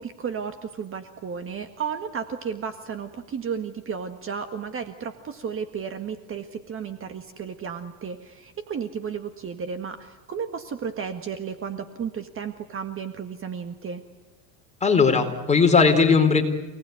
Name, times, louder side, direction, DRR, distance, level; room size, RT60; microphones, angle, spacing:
voice 1, 0.0-14.0, right 6 dB, 30° right, 8 dB, 1.8 m, -33 dB
voice 2, 14.8-16.4, left 5 dB, 15° left, 4 dB, 4.1 m, -18 dB
28.5 x 19.0 x 9.4 m, 1.1 s
supercardioid pair, 130°, 45 cm